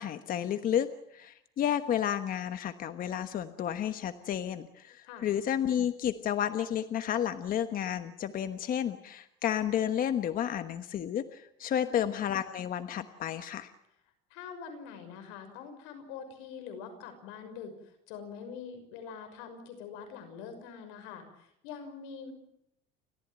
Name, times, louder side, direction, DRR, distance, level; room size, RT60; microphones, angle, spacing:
voice 1, 0.0-13.7, left 10 dB, 45° left, 10 dB, 1.2 m, -31 dB
voice 2, 11.7-12.1 14.3-17.7 18.1-22.3, left 6 dB, 90° left, 7 dB, 6.1 m, -44 dB
30.0 x 14.5 x 9.0 m, 0.80 s
cardioid pair, 130°, 20 cm